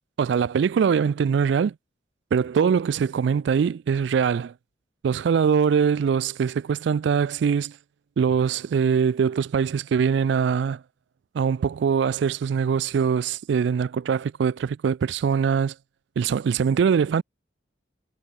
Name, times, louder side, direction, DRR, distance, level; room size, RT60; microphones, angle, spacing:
voice 1, 0.2-1.7 2.3-4.5 5.0-7.7 8.2-10.8 11.3-15.7 16.2-17.2, right 6 dB, 65° right, 0.3 m, -22 dB
head